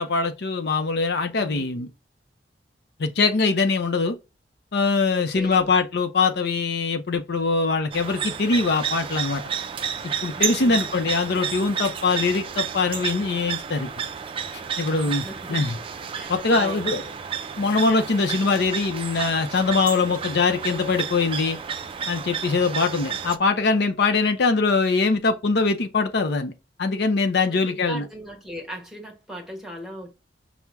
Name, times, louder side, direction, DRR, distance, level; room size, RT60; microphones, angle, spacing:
voice 1, 0.0-1.9 3.0-4.2 4.7-9.4 10.2-13.9 14.8-15.2 15.5-15.8 16.3-17.0 17.6-21.6 22.1-26.5 26.8-28.0, left 4 dB, 65° left, 0.6 m, -22 dB
voice 2, 1.4-1.9 5.1-5.7 10.3-10.9 14.8-15.7 16.1-17.2 23.1-23.2 27.4-30.1, right 1 dB, 5° right, 1.2 m, -38 dB
sound 1, 7.9-23.4, right 7 dB, 30° right, 0.4 m, -31 dB
5.8 x 2.1 x 3.4 m
head